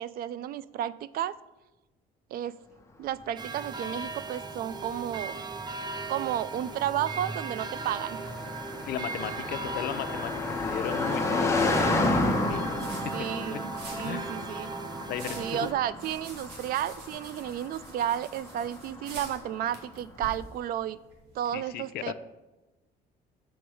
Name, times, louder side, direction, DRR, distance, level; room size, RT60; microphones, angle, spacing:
voice 1, 0.0-1.4 2.3-2.6 3.0-5.4 6.1-8.3 13.1-14.7 15.4-21.0 21.3-22.1, right 11 dB, 60° right, 18 dB, 0.4 m, -32 dB
sound 1, 3.4-15.7, right 4 dB, 25° right, 0.7 m, -38 dB
Car passing by, 3.5-20.0, left 2 dB, 15° left, 1.2 m, -33 dB
voice 2, 8.9-12.6 13.0-13.1 13.5-13.6 14.0-14.4 15.1-15.7 21.5-22.1, left 10 dB, 70° left, 12 dB, 0.6 m, -36 dB
sound 2, 12.6-21.5, right 3 dB, 80° right, 2.0 m, -49 dB
7.0 x 6.0 x 4.8 m, 1.1 s
cardioid pair, 110°, 17 cm